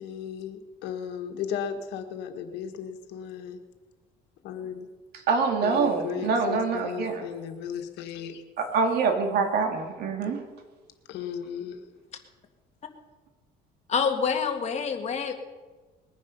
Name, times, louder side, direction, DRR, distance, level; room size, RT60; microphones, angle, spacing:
voice 1, 0.0-3.6 4.4-4.9 5.6-8.4 11.1-11.8, left 8 dB, 90° left, 5 dB, 1.7 m, -35 dB
voice 2, 5.1-7.3 8.6-10.4, right 5 dB, 70° right, 3 dB, 2.8 m, -25 dB
voice 3, 13.9-15.3, left 6 dB, 40° left, 4 dB, 2.0 m, -26 dB
21.0 x 10.0 x 5.5 m, 1.3 s
cardioid pair, 110°, 17 cm